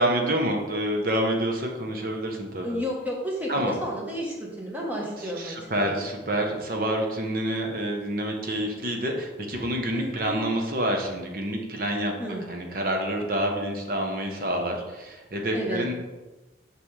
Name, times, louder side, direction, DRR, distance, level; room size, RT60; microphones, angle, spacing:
voice 1, 0.0-2.7 3.5-3.8 5.2-12.1 12.5-15.9, right 1 dB, 50° right, 2 dB, 1.0 m, -27 dB
voice 2, 2.6-5.9 9.9-10.5 12.2-12.4 15.5-15.8, equal, 10° right, -3 dB, 1.2 m, -32 dB
5.9 x 5.8 x 3.3 m, 1.1 s
head